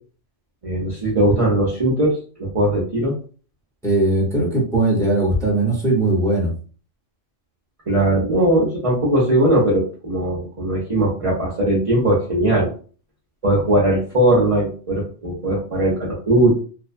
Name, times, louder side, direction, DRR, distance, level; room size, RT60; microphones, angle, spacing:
voice 1, 0.6-2.1 2.4-3.1 7.9-12.7 13.4-16.6, right 1 dB, 40° right, -5 dB, 0.5 m, -19 dB
voice 2, 3.8-6.5, right 2 dB, 5° left, -4 dB, 0.7 m, -19 dB
2.6 x 2.1 x 2.4 m, 0.41 s
omnidirectional pair, 1.3 m